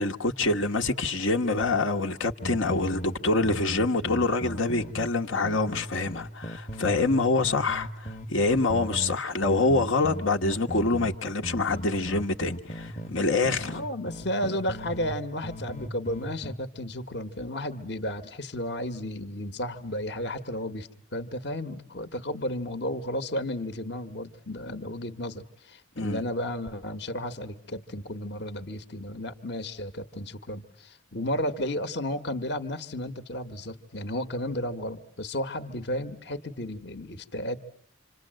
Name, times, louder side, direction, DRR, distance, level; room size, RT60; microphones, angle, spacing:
voice 1, 0.0-13.7 26.0-26.2, left 3 dB, 80° left, 1.4 m, -26 dB
sound 1, 2.4-5.1 5.4-7.2 7.4-13.1 13.4-15.2 15.4-16.5, equal, 35° left, 1.1 m, -37 dB
voice 2, 13.5-37.6, left 1 dB, 55° left, 1.4 m, -33 dB
27.5 x 26.5 x 7.7 m
head